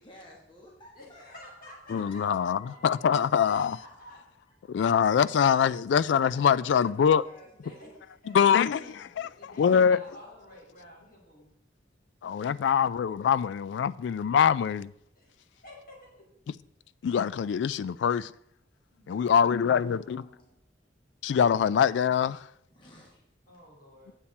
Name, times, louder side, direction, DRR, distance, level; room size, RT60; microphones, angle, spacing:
voice 1, 0.0-1.5 1.8-3.0 6.1-8.0 9.8-10.5 19.0-20.5 22.7-23.2, left 1 dB, 25° left, 1.6 m, -54 dB
voice 2, 0.9-4.2 7.6-8.4 8.7-11.5 15.1-16.2 18.9-19.6 23.5-24.1, left 1 dB, 50° left, 3.1 m, -51 dB
voice 3, 1.9-3.8 4.7-7.2 8.3-8.8 9.2-10.0 12.2-14.9 17.0-18.3 19.1-20.2 21.2-22.5, left 7 dB, 70° left, 0.3 m, -24 dB
8.7 x 7.2 x 4.1 m
head